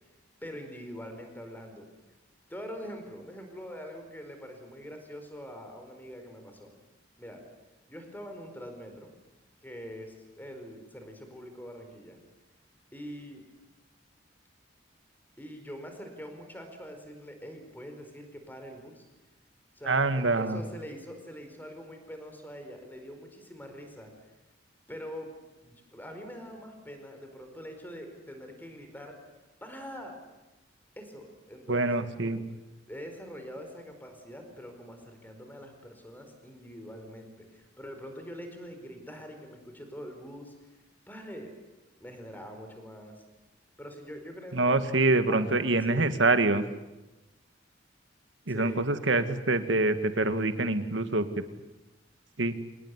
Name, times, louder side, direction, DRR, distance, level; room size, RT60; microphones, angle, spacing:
voice 1, 0.4-1.9 2.5-6.7 7.2-7.4 7.9-9.1 9.6-12.2 12.9-13.4 15.4-19.0 19.7-24.1 24.9-25.3 25.6-29.2 29.6-30.2 31.0-32.4 32.9-40.5 41.1-41.6 42.0-43.2 43.8-46.2 48.5-48.8, equal, 10° left, 5 dB, 4.8 m, -44 dB
voice 2, 19.9-20.6 31.7-32.4 44.5-46.6 48.5-51.3 52.4-52.5, right 2 dB, 75° right, 9 dB, 1.9 m, -25 dB
26.5 x 19.0 x 9.7 m, 1.0 s
head